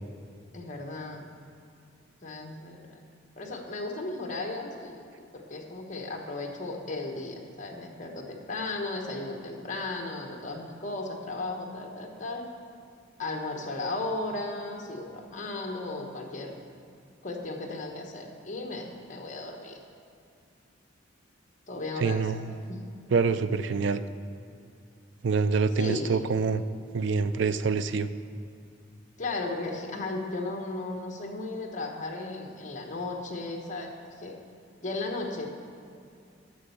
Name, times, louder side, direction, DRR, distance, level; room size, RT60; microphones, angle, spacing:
voice 1, 0.5-1.2 2.2-3.0 3.4-5.0 5.3-12.4 13.2-16.6 17.2-19.8 21.7-22.3 22.7-22.8 25.8-26.3 29.2-33.9 34.2-34.4 34.8-35.5, left 2 dB, 35° left, 1 dB, 1.1 m, -35 dB
voice 2, 22.0-22.5 23.1-24.0 25.2-26.6 26.9-28.1, right 5 dB, 60° right, 12 dB, 0.4 m, -26 dB
9.9 x 6.2 x 6.9 m, 2.5 s
head